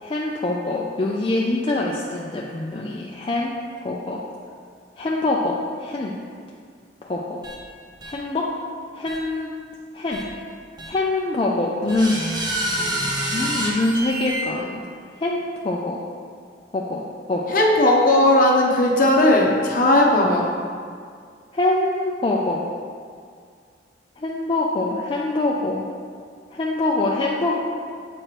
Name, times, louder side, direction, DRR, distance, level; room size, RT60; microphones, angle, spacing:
voice 1, 0.0-3.6 3.8-4.2 5.0-6.2 7.0-7.4 8.1-8.5 8.9-9.5 9.9-10.2 10.9-12.3 13.3-14.8 15.2-16.0 16.7-17.6 21.5-22.7 24.2-25.9 26.5-27.6, left 2 dB, 30° left, -3 dB, 0.4 m, -24 dB
sound 1, 7.4-7.6 8.0-8.1 9.1-9.2 10.1-10.2 10.8-10.9 11.9-14.4, right 1 dB, 25° right, 0.8 m, -27 dB
voice 2, 17.5-20.5, left 1 dB, 50° left, -1 dB, 0.8 m, -17 dB
7.7 x 4.6 x 3.0 m, 2.1 s
head